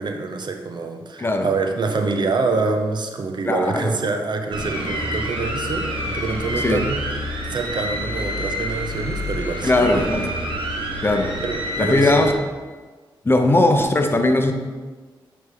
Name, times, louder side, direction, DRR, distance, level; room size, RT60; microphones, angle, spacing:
voice 1, 0.0-7.0 7.5-10.0 11.4-12.3, right 3 dB, 55° right, 5 dB, 0.7 m, -26 dB
voice 2, 1.2-1.5 3.4-3.9 6.6-6.8 9.6-10.3 11.0-11.3 11.8-12.3 13.2-14.5, left 2 dB, 25° left, 5 dB, 0.7 m, -19 dB
sound 1, 4.5-12.3, equal, 70° right, 1.2 m, -27 dB
9.2 x 3.4 x 3.7 m, 1.4 s
cardioid pair, 60°, 9 cm